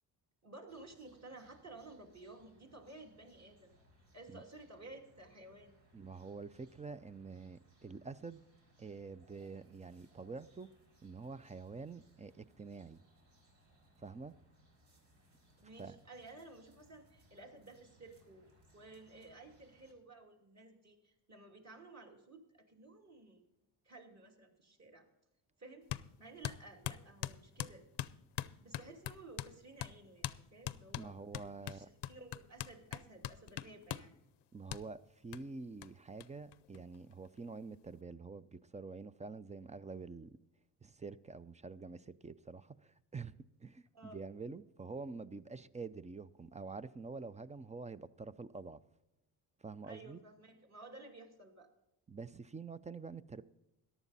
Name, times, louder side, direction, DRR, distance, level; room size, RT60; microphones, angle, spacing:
voice 1, 0.4-3.7 4.1-5.7 15.6-18.5 18.7-23.4 23.8-25.1 25.6-25.9 26.2-27.8 28.6-31.2 31.6-34.1 43.9-44.2 49.8-51.7, right 2 dB, 35° right, 2.7 m, -54 dB
sound 1, 0.7-19.9, right 1 dB, 75° right, 4.2 m, -68 dB
voice 2, 5.9-8.4 8.8-10.7 11.0-13.0 14.0-14.3 15.8-16.0 30.9-31.9 34.5-40.3 40.8-48.8 49.6-50.2 52.1-53.4, right 4 dB, 15° right, 0.4 m, -47 dB
sound 2, 25.9-26.1 26.4-29.5 29.8-29.9 30.2-30.4 30.6-34.1 34.7-34.8 35.3-35.4 35.8-35.9 36.2-36.3 36.5-37.3, left 13 dB, 65° left, 0.6 m, -41 dB
14.5 x 11.0 x 4.1 m
cardioid pair, 80°, 46 cm